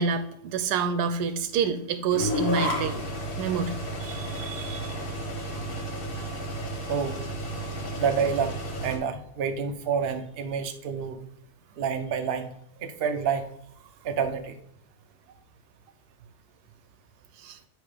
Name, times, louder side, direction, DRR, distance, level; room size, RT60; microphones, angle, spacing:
voice 1, 0.0-3.0 3.4-3.7 4.0-4.9 17.4-17.6, right 5 dB, 80° right, 9 dB, 1.2 m, -28 dB
sound 1, 2.1-9.0, equal, 60° left, 1.8 m, -32 dB
voice 2, 8.0-8.5 8.8-11.2 11.8-12.5 12.8-13.5 14.0-14.6, right 6 dB, 55° right, 7 dB, 0.7 m, -28 dB
9.0 x 3.5 x 5.0 m, 0.69 s
omnidirectional pair, 1.7 m